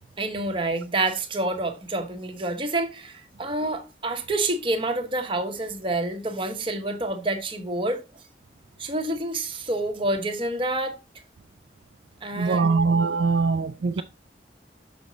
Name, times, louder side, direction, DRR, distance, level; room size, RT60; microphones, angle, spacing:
voice 1, 0.2-8.0 8.8-11.0 12.2-12.9, right 2 dB, 30° right, 1.2 m, -28 dB
voice 2, 12.3-14.0, right 4 dB, 85° right, 0.5 m, -22 dB
7.0 x 5.2 x 4.0 m
head